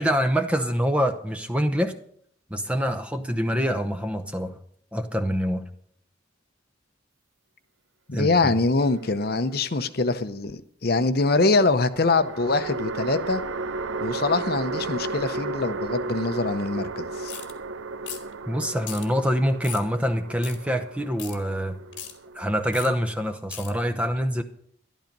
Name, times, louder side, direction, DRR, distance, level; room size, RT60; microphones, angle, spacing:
voice 1, 0.0-1.9 2.5-4.6 4.9-5.6 8.1-8.5 18.5-21.8 22.3-24.4, equal, 5° right, 7 dB, 0.8 m, -25 dB
voice 2, 8.1-13.4 14.0-17.3, left 3 dB, 50° left, 11 dB, 0.7 m, -24 dB
sound 1, 8.8-9.7 11.9-23.3, right 3 dB, 85° right, 0.6 m, -34 dB
sound 2, 17.3-17.5 18.0-18.3 18.8-19.1 19.6-19.9 20.4-20.6 21.2-21.4 21.9-22.1 22.7-22.9 23.5-23.7, left 9 dB, 70° left, 2.3 m, -37 dB
13.0 x 12.0 x 5.3 m, 0.64 s
head